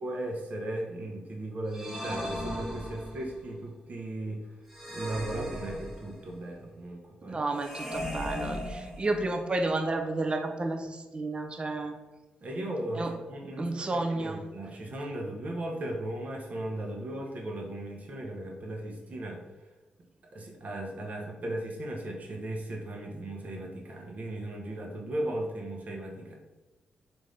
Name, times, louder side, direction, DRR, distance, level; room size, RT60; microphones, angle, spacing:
voice 1, 0.0-4.4 4.9-7.4 12.4-19.4 20.3-26.4, right 1 dB, 50° right, 0 dB, 0.8 m, -37 dB
sound 1, 1.7-3.4 4.7-6.4 7.6-9.4, equal, 5° right, 0.9 m, -37 dB
voice 2, 7.3-11.9 13.0-13.1 13.6-14.4, right 2 dB, 30° right, 5 dB, 0.5 m, -31 dB
3.5 x 2.6 x 3.2 m, 1.1 s
cardioid pair, 60°, 3 cm